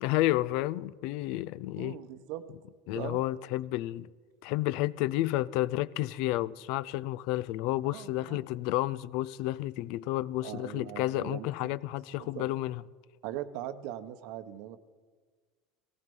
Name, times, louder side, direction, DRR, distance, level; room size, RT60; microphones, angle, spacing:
voice 1, 0.0-2.0 2.9-4.1 4.4-12.8, left 16 dB, 65° left, 0.4 m, -31 dB
voice 2, 1.8-2.4 2.9-3.2 7.8-8.4 10.4-11.7 12.1-12.5 13.2-14.8, right 12 dB, 65° right, 1.0 m, -40 dB
17.5 x 15.0 x 5.4 m
supercardioid pair, 120°, 0 cm